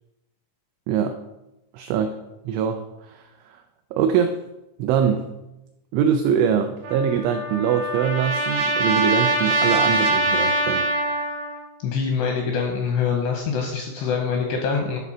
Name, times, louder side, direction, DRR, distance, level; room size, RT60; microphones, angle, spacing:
voice 1, 0.9-1.2 1.7-2.2 2.5-3.2 3.9-4.4 4.8-5.3 5.9-10.9, right 7 dB, 90° right, 7 dB, 2.6 m, -23 dB
Trumpet, 6.8-11.7, right 2 dB, 70° right, 2.5 m, -23 dB
voice 2, 11.8-15.0, left 5 dB, 80° left, 2 dB, 2.5 m, -24 dB
11.5 x 4.0 x 6.0 m, 0.97 s
omnidirectional pair, 5.9 m